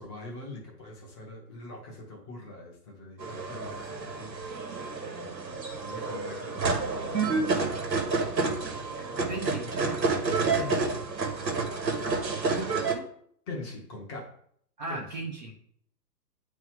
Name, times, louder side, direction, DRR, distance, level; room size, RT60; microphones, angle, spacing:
voice 1, 0.0-4.4 5.2-7.7 10.6-10.9 13.5-14.3 14.9-15.1, left 2 dB, 15° left, -2 dB, 0.8 m, -43 dB
sound 1, 3.2-12.9, right 4 dB, 85° right, 1.3 m, -29 dB
voice 2, 9.0-10.0 12.5-13.1 14.8-15.5, right 3 dB, 30° right, -1 dB, 0.6 m, -37 dB
9.4 x 3.1 x 3.6 m, 0.64 s
hypercardioid pair, 140°, 49 cm